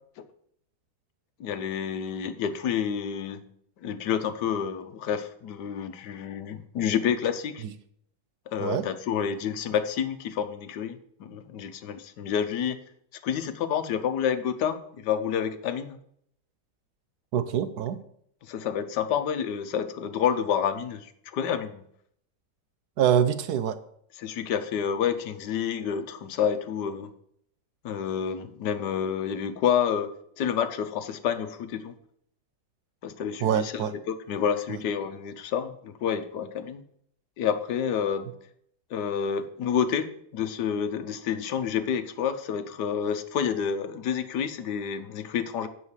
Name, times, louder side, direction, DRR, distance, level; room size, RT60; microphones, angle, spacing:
voice 1, 1.4-3.4 3.8-7.6 8.5-12.8 13.2-16.0 18.4-21.8 24.2-27.1 27.8-31.9 33.0-36.8 37.4-38.3 38.9-45.7, left 8 dB, 75° left, 10 dB, 1.3 m, -29 dB
voice 2, 17.3-18.0 23.0-23.8 33.4-33.9 34.7-34.8, right 9 dB, 70° right, 13 dB, 1.1 m, -25 dB
8.1 x 5.6 x 7.2 m, 0.68 s
omnidirectional pair, 1.9 m